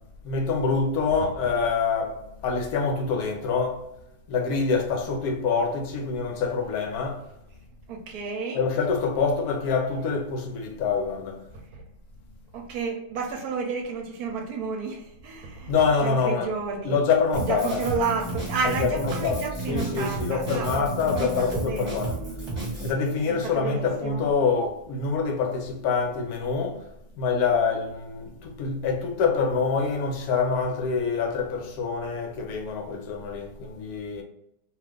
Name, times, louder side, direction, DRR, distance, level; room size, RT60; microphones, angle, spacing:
voice 1, 0.2-3.8 4.3-7.2 8.5-11.4 15.7-16.5 16.8-17.9 18.6-22.2 22.8-26.9 27.2-34.2, left 5 dB, 75° left, 1.1 m, -26 dB
voice 2, 7.9-8.6 11.5-11.8 12.5-15.7 16.0-17.0 17.5-22.0 23.1-24.3, right 4 dB, 75° right, 1.1 m, -31 dB
Drum kit, 17.3-22.9, right 2 dB, 10° right, 1.3 m, -32 dB
2.8 x 2.4 x 3.4 m
omnidirectional pair, 1.7 m